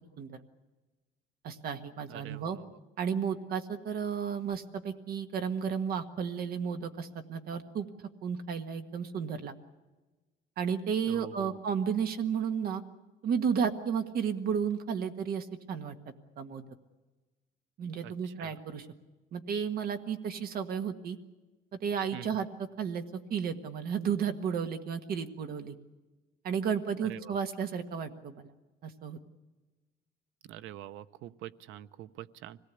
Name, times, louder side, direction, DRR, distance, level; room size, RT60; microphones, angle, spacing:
voice 1, 1.4-2.6 3.0-7.9 8.2-9.5 10.6-12.8 13.2-16.6 17.8-18.9 19.3-21.2 21.8-22.5 22.8-23.0 23.3-25.7 26.4-28.5 28.8-29.2, right 7 dB, 50° right, 8 dB, 1.6 m, -33 dB
voice 2, 2.1-2.8 11.0-11.6 18.0-18.5 22.1-22.5 27.0-27.4 30.4-32.6, right 13 dB, 90° right, 14 dB, 0.8 m, -45 dB
25.0 x 18.5 x 8.3 m, 1.2 s
cardioid pair, 170°, 20 cm